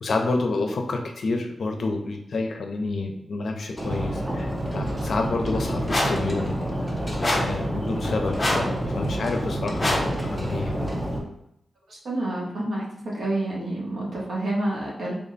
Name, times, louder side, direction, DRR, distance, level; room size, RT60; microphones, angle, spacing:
voice 1, 0.0-6.6 7.3-10.9, left 3 dB, 65° left, 4 dB, 0.5 m, -29 dB
sound 1, 3.8-11.2, right 1 dB, 15° right, 0.7 m, -28 dB
sound 2, 5.9-6.3 7.2-7.6 8.4-8.7 9.8-10.2, left 1 dB, 25° left, 0.7 m, -25 dB
voice 2, 11.9-12.8 13.1-15.1, right 1 dB, 75° right, -6 dB, 1.3 m, -28 dB
3.5 x 2.2 x 3.9 m, 0.78 s
wide cardioid pair, 140°, 0 cm